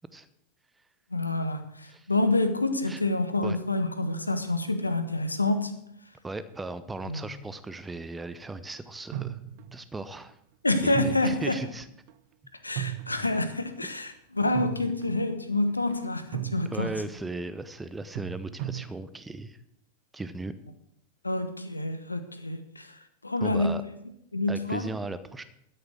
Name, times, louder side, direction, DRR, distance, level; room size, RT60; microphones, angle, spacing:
voice 1, 1.1-5.7 7.1-7.4 10.6-11.6 12.6-16.9 21.2-23.8 24.3-24.9, left 2 dB, 80° left, 9 dB, 1.2 m, -28 dB
voice 2, 6.2-9.4 9.7-10.4 10.8-11.9 16.7-19.6 20.1-20.5 23.4-23.8 24.5-25.4, right 2 dB, 10° right, 14 dB, 0.8 m, -37 dB
sound 1, 9.1-9.9 10.9-11.7 12.1-12.2 12.8-13.4 14.5-15.3 15.7-16.0 16.3-17.0 18.1-18.9, right 12 dB, 45° right, 0.9 m, -36 dB
13.0 x 6.9 x 7.9 m, 0.74 s
figure-of-eight pair, 90°, 0 cm